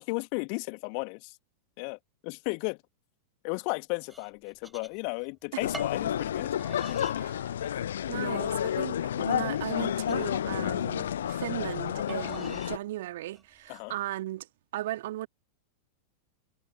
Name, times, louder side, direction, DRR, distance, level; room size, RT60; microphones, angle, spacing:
voice 1, 0.0-1.4 1.8-2.8 3.4-6.5 6.8-7.2 13.7-13.9, left 40 dB or more, 45° left, 2.1 m, -35 dB
sound 1, 4.1-5.3 5.7-6.0 6.6-7.2 7.6-8.1 8.6-8.7 9.3-10.9 12.1-12.8 13.3-13.8, right 2 dB, 10° right, 7.0 m, -47 dB
sound 2, 5.6-12.8, left 10 dB, 65° left, 0.7 m, -30 dB
voice 2, 8.1-14.5 14.7-15.3, right 15 dB, 55° right, 2.2 m, -37 dB
figure-of-eight pair, 90°, 0 cm